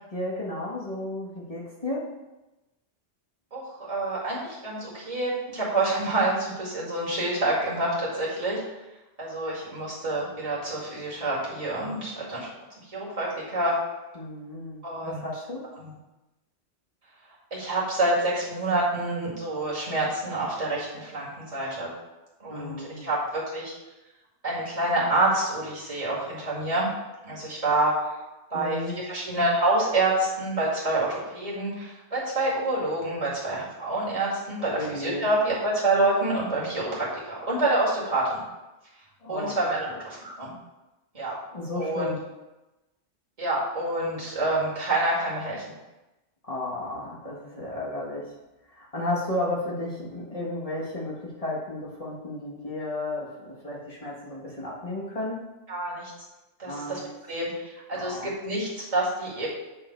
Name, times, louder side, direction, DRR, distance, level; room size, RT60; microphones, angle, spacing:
voice 1, 0.1-2.2 14.1-15.7 22.5-23.1 28.5-29.0 34.6-35.3 39.2-39.6 41.5-42.3 46.4-48.3 48.7-55.4 56.7-57.1 57.9-58.3, left 1 dB, 30° left, -5 dB, 1.4 m, -33 dB
voice 2, 3.5-8.6 9.2-12.5 12.8-13.8 14.8-15.2 15.7-15.9 17.5-21.9 22.4-23.7 24.4-26.9 27.2-28.1 28.5-38.4 39.3-40.5 41.1-41.4 41.7-42.1 43.4-45.6 55.7-56.1 56.6-57.0 57.3-59.5, right 2 dB, 30° right, -7 dB, 2.2 m, -27 dB
7.7 x 3.7 x 4.5 m, 1.0 s
omnidirectional pair, 1.2 m